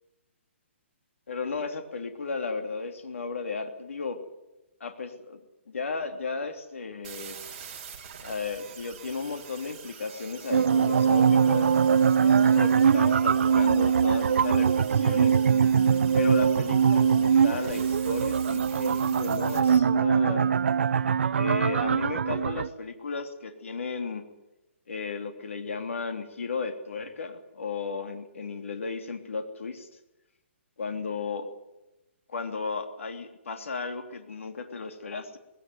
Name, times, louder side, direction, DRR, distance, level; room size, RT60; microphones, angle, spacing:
voice 1, 1.3-4.2 4.8-5.4 5.7-7.4 8.2-11.8 12.2-15.4 16.1-20.5 21.3-24.2 24.9-29.9 30.8-31.5 32.3-35.4, left 4 dB, 85° left, 6 dB, 3.1 m, -34 dB
sound 1, 7.0-19.8, right 7 dB, 35° right, 4.1 m, -46 dB
sound 2, 10.5-22.7, right 7 dB, 65° right, 0.8 m, -22 dB
20.5 x 18.0 x 9.6 m, 0.97 s
hypercardioid pair, 170°, 7 cm